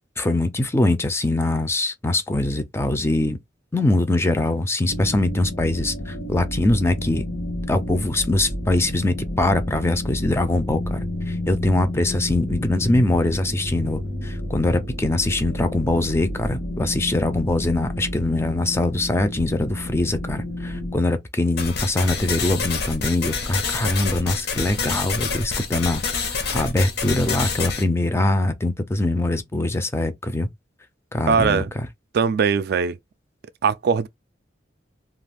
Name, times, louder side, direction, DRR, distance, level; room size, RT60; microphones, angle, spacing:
voice 1, 0.2-3.4 3.7-7.2 7.7-11.0 11.3-26.0 26.3-30.5 31.1-31.9, left 2 dB, 15° left, 0.4 m, -23 dB
sound 1, 4.9-21.0, left 1 dB, 75° left, 1.1 m, -30 dB
sound 2, 21.6-27.8, left 5 dB, 60° left, 0.8 m, -27 dB
voice 2, 31.3-31.7 32.1-33.0 33.6-34.1, right 6 dB, 55° right, 0.3 m, -20 dB
2.4 x 2.3 x 3.3 m
head